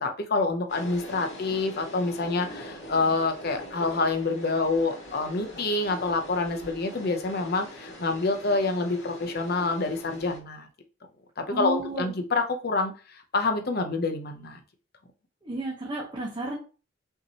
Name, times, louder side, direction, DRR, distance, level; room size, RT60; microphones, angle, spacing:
voice 1, 0.0-10.7 11.4-14.6, left 3 dB, 55° left, 5 dB, 0.8 m, -27 dB
sound 1, 0.7-10.4, equal, 75° left, 2.0 m, -43 dB
voice 2, 11.5-12.1 15.4-16.6, right 2 dB, 25° right, -5 dB, 1.1 m, -32 dB
5.6 x 3.0 x 2.9 m, 0.35 s
head